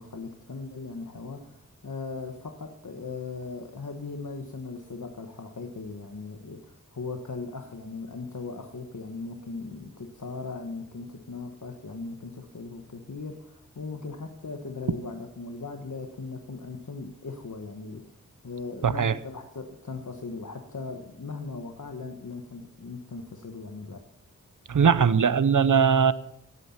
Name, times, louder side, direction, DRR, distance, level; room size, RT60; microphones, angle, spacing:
voice 1, 0.0-18.1 18.4-24.0, left 4 dB, 70° left, 4 dB, 1.4 m, -38 dB
voice 2, 18.8-19.1 24.7-26.1, right 6 dB, 75° right, 15 dB, 0.8 m, -20 dB
17.0 x 9.7 x 5.9 m, 0.77 s
wide cardioid pair, 65°, 31 cm